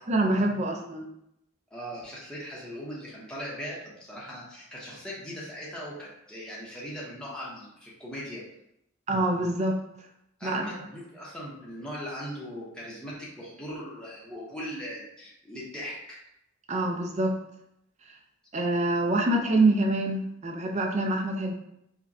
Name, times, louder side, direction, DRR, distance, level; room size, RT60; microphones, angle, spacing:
voice 1, 0.1-1.1 9.1-9.8 10.4-10.6 16.7-17.4 18.5-21.5, right 2 dB, 35° right, 2 dB, 0.5 m, -25 dB
voice 2, 1.7-8.4 10.4-16.2, equal, 5° left, -7 dB, 0.8 m, -39 dB
4.8 x 2.2 x 2.6 m, 0.78 s
head